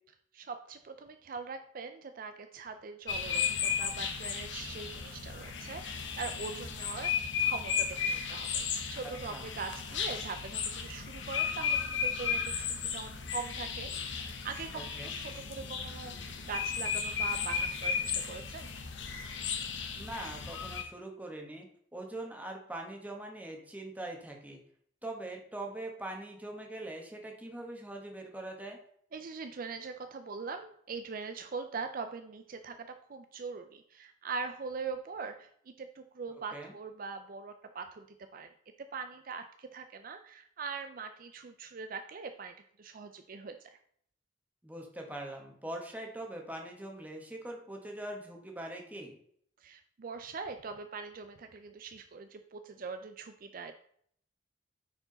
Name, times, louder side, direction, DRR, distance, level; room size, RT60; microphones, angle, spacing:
voice 1, 0.3-8.6 8.9-16.2 16.5-18.7 29.1-35.5 35.8-38.1 38.3-38.5 38.8-43.8 49.6-53.7, right 4 dB, 45° right, 8 dB, 0.4 m, -42 dB
sound 1, 3.1-20.8, left 6 dB, 70° left, 1.0 m, -35 dB
voice 2, 14.7-15.1 19.9-21.7 21.9-24.6 25.0-28.8 36.5-36.7 44.6-49.2, right 1 dB, 10° right, 1 dB, 1.3 m, -42 dB
9.4 x 4.7 x 4.0 m, 0.64 s
head